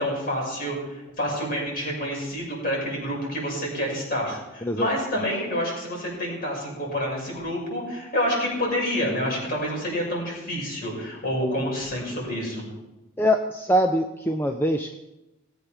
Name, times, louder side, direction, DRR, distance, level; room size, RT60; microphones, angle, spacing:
voice 1, 0.0-12.6, equal, 45° left, -3 dB, 6.2 m, -28 dB
voice 2, 13.2-14.9, equal, 10° left, 5 dB, 0.5 m, -23 dB
18.5 x 8.1 x 6.0 m, 0.99 s
head